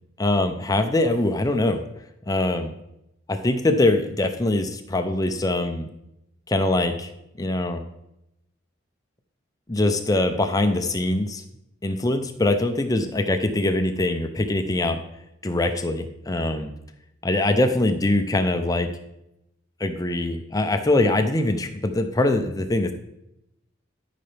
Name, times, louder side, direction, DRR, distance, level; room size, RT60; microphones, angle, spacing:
voice 1, 0.2-1.8 2.3-2.7 3.3-5.9 6.5-7.1 7.4-7.8 9.7-11.4 11.8-15.0 15.4-16.7 17.2-18.9 19.8-22.9, left 2 dB, 20° left, 7 dB, 0.5 m, -23 dB
13.0 x 5.6 x 3.4 m, 0.85 s
head